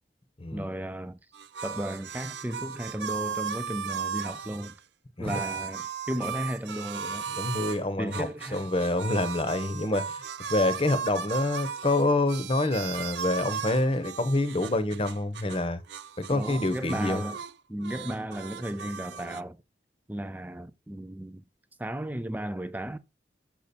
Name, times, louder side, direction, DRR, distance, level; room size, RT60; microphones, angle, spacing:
voice 1, 0.5-1.2 1.6-4.7 5.2-7.3 8.0-8.6 16.3-17.4 17.7-19.6 20.1-21.4 21.8-23.0, right 1 dB, 10° right, 0.4 m, -34 dB
sound 1, 1.3-4.7 5.3-7.8 8.1-15.6 15.9-17.5 17.8-19.4, right 7 dB, 75° right, 0.5 m, -36 dB
voice 2, 7.3-10.2 10.5-15.8 16.2-17.2, left 2 dB, 30° left, 0.9 m, -27 dB
6.9 x 6.0 x 4.3 m
head